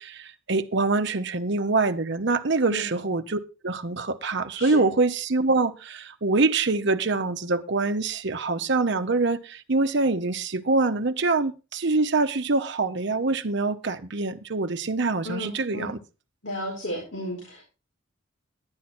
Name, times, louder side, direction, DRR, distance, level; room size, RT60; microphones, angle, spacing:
voice 1, 0.0-16.0, right 3 dB, 60° right, 0.9 m, -25 dB
voice 2, 4.5-4.9 15.2-16.0 16.4-17.6, left 1 dB, 65° left, 4.4 m, -33 dB
10.5 x 10.0 x 4.3 m
head